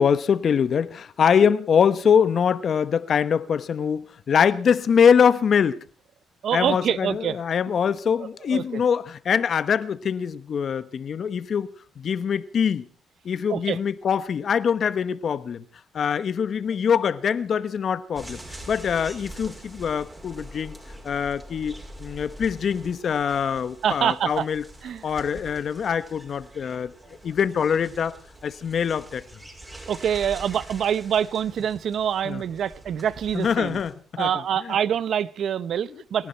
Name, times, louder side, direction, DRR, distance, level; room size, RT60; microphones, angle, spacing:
voice 1, 0.0-5.8 6.5-12.9 13.2-15.6 15.9-18.4 18.7-20.8 21.0-24.6 25.0-26.9 27.2-28.2 28.4-29.2 32.2-32.4 33.3-34.3 34.6-34.8 36.2-36.3, left 7 dB, 55° left, 1.0 m, -23 dB
voice 2, 6.4-7.4 8.2-8.8 13.5-13.8 23.8-24.5 24.8-25.0 29.9-33.8 34.2-36.3, right 9 dB, 65° right, 0.7 m, -25 dB
sound 1, 18.2-33.9, right 1 dB, 15° right, 5.4 m, -44 dB
28.5 x 11.5 x 4.4 m
cardioid pair, 90°, 0 cm